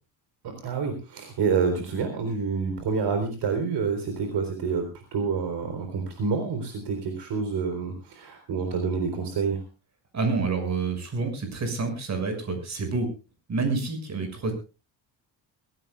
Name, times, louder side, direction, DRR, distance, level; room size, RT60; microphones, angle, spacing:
voice 1, 0.4-9.6, right 5 dB, 60° right, 6 dB, 4.0 m, -28 dB
voice 2, 10.1-13.1 13.5-14.5, right 3 dB, 35° right, 7 dB, 6.4 m, -28 dB
23.5 x 16.5 x 2.3 m, 0.32 s
cardioid pair, 140°, 46 cm